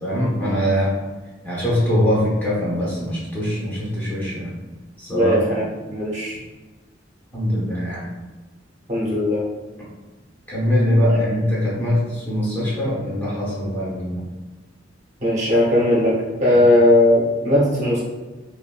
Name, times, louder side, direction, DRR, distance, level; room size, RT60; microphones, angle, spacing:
voice 1, 0.0-1.0 1.4-4.5 5.0-5.7 7.3-8.0 10.5-14.2, equal, 10° left, -8 dB, 0.8 m, -22 dB
voice 2, 5.1-6.4 8.9-9.4 11.1-11.2 15.2-16.1 16.4-18.0, left 1 dB, 35° right, -5 dB, 0.8 m, -18 dB
3.0 x 2.5 x 2.3 m, 1.2 s
head